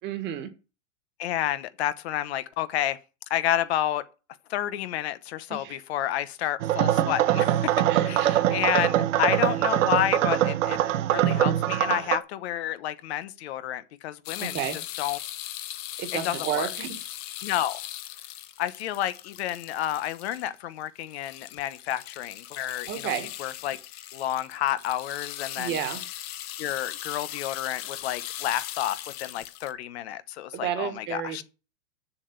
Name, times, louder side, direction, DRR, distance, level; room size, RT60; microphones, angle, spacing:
voice 1, 0.0-0.5 5.5-5.8 7.9-8.4 14.4-14.8 16.0-17.1 22.9-23.3 25.6-26.0 30.5-31.4, right 9 dB, 30° right, 1.6 m, -32 dB
voice 2, 1.2-3.0 3.3-4.0 4.5-7.7 8.0-10.8 11.1-14.6 15.0-15.2 16.2-16.7 17.4-17.8 18.6-23.8 24.1-25.8 26.6-31.4, left 12 dB, 60° left, 0.9 m, -30 dB
sound 1, 6.6-12.2, right 12 dB, 80° right, 1.1 m, -23 dB
rain stick, 14.2-20.6 20.8-29.7, left 13 dB, 25° left, 0.6 m, -39 dB
7.1 x 6.9 x 8.0 m
supercardioid pair, 160°, 37 cm